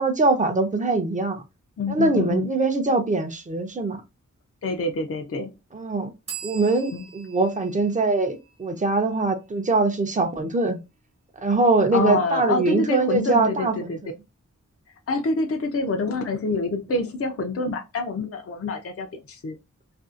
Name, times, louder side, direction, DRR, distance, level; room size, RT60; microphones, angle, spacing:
voice 1, 0.0-1.4 1.9-4.0 5.7-6.1 6.4-10.8 11.4-14.1, right 3 dB, 25° right, 0.6 m, -23 dB
voice 2, 1.8-2.5 4.6-5.5 6.9-7.1 11.9-14.0 15.1-19.6, left 3 dB, 50° left, 0.5 m, -26 dB
sound 1, 6.3-9.8, right 7 dB, 55° right, 1.0 m, -42 dB
2.6 x 2.3 x 2.4 m
wide cardioid pair, 60°, 30 cm